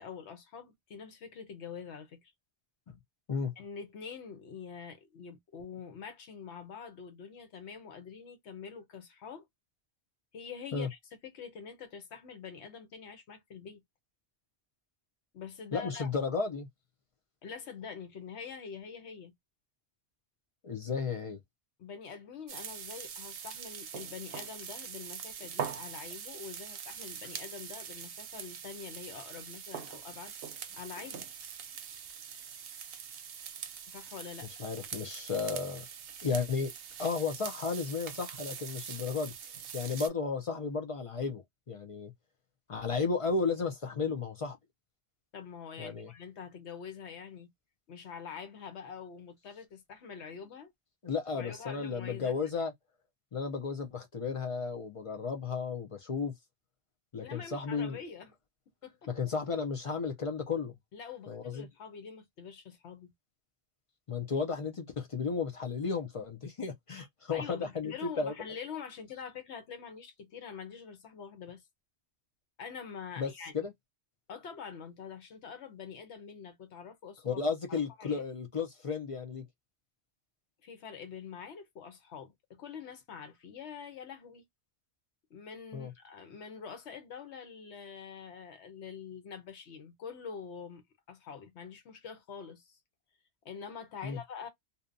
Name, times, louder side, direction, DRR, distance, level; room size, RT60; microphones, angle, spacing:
voice 1, 0.0-2.3 3.6-9.4 10.3-13.8 15.3-16.1 17.4-19.3 21.8-30.3 30.7-31.3 33.9-34.5 45.3-47.5 47.9-50.7 51.3-52.4 57.2-58.3 58.8-59.0 60.9-63.1 67.3-71.6 72.6-73.5 74.3-77.4 77.7-78.2 80.6-84.4 85.3-92.8 93.4-94.5, left 6 dB, 75° left, 1.0 m, -45 dB
voice 2, 15.7-16.7 20.6-21.4 34.6-35.8 36.2-36.7 37.0-39.3 39.7-42.1 42.7-44.6 45.8-46.1 51.0-52.7 53.3-56.3 57.1-58.0 59.1-60.7 61.3-61.7 64.1-68.3 73.2-73.7 77.2-79.4 85.7-85.9 94.0-94.2, left 5 dB, 50° left, 0.4 m, -33 dB
sound 1, 22.5-40.1, right 7 dB, 65° right, 0.7 m, -43 dB
2.7 x 2.2 x 2.5 m
omnidirectional pair, 1.1 m